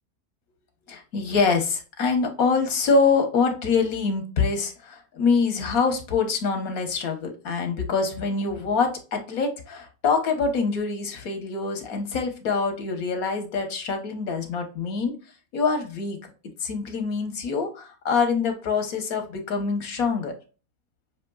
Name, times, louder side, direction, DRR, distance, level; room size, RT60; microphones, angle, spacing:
voice 1, 0.9-15.1 15.5-16.2 16.6-20.3, left 4 dB, 85° left, 5 dB, 1.5 m, -25 dB
6.5 x 3.0 x 2.3 m, 0.34 s
omnidirectional pair, 1.5 m